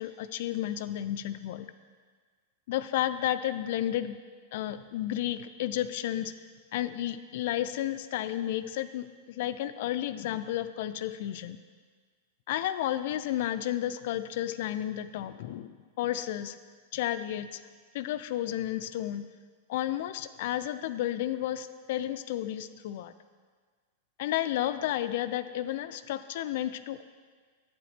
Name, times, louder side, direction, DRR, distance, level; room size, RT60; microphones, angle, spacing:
voice 1, 0.0-1.7 2.7-4.2 4.5-6.3 6.7-11.6 12.5-16.6 16.9-17.6 17.9-19.2 19.7-23.1 24.2-27.0, left 12 dB, 65° left, 12 dB, 0.3 m, -32 dB
8.9 x 4.9 x 3.4 m, 1.6 s
hypercardioid pair, 110°, 0 cm